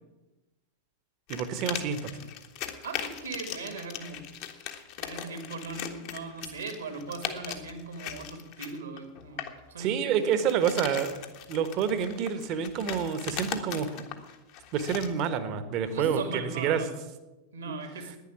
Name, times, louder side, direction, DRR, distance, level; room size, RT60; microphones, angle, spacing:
sound 1, 1.3-9.6 10.2-15.3, left 10 dB, 45° left, 1.4 m, -39 dB
voice 1, 1.3-2.1 9.8-11.2 11.5-14.0 14.7-16.8, right 7 dB, 40° right, 11 dB, 1.4 m, -28 dB
voice 2, 2.8-4.2 5.0-10.4 15.8-16.9 17.5-18.1, right 4 dB, 70° right, 6 dB, 2.5 m, -39 dB
11.0 x 10.0 x 8.7 m, 1.1 s
figure-of-eight pair, 90°, 0 cm